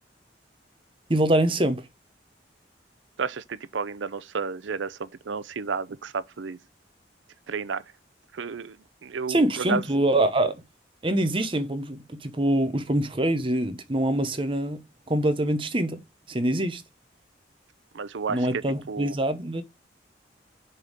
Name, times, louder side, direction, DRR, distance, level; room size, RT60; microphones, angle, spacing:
voice 1, 1.1-1.8 9.3-10.6 11.0-14.8 15.1-16.0 16.3-16.8 18.3-19.6, right 1 dB, 30° right, 0.9 m, -24 dB
voice 2, 3.2-6.6 7.5-7.8 8.3-8.8 9.0-9.8 17.9-18.5 18.9-19.1, right 5 dB, 85° right, 0.6 m, -31 dB
6.7 x 3.6 x 5.0 m
head